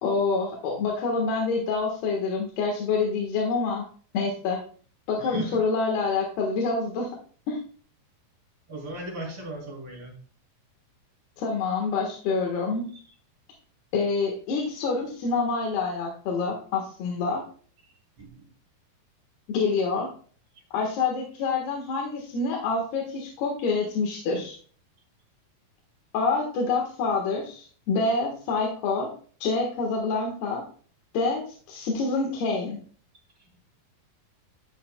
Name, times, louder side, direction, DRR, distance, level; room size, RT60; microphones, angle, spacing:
voice 1, 0.0-3.8 4.1-4.6 5.1-7.1 7.5-7.6 11.4-12.8 13.9-17.4 19.5-20.1 20.7-24.6 26.1-29.1 29.4-30.6 31.1-32.8, left 4 dB, 85° left, 0 dB, 3.4 m, -27 dB
voice 2, 5.2-5.6 8.7-10.1 17.8-18.5, right 1 dB, 35° right, -2 dB, 3.4 m, -38 dB
11.5 x 6.8 x 2.2 m, 0.43 s
omnidirectional pair, 4.4 m